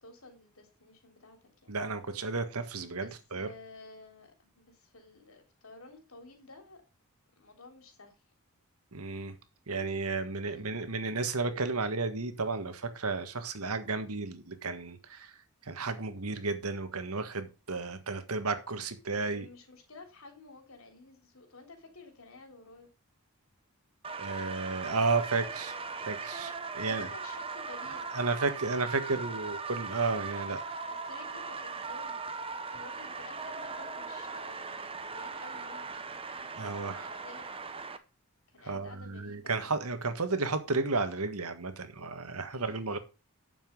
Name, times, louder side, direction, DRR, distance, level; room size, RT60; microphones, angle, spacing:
voice 1, 0.0-1.8 3.0-6.8 7.4-8.2 10.2-11.0 19.3-22.9 26.8-28.2 29.0-29.2 30.9-36.0 36.5-37.5 38.5-39.8 42.5-42.8, left 3 dB, 70° left, 3.4 m, -52 dB
voice 2, 1.7-3.5 8.9-9.4 9.7-15.4 15.6-19.5 24.2-27.1 28.1-30.7 36.6-37.1 38.6-43.0, right 3 dB, 85° right, 1.7 m, -33 dB
sound 1, 24.0-38.0, right 4 dB, 25° right, 0.9 m, -39 dB
9.3 x 7.2 x 5.4 m
head